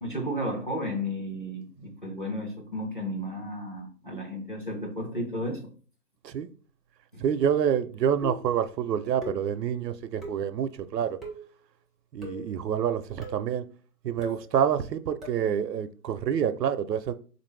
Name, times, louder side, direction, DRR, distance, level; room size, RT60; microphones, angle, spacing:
voice 1, 0.0-5.6 7.1-7.2, equal, 30° left, 0.7 m, -33 dB
voice 2, 7.2-11.2 12.1-13.6 14.0-17.1, right 8 dB, 90° right, 0.6 m, -27 dB
sound 1, 8.2-8.6 9.2-9.6 10.2-10.5 11.2-11.5 12.2-12.5 13.2-13.5 14.2-14.5 15.2-15.5, equal, ahead, 0.5 m, -40 dB
4.0 x 2.5 x 3.1 m
hypercardioid pair, 180°, 48 cm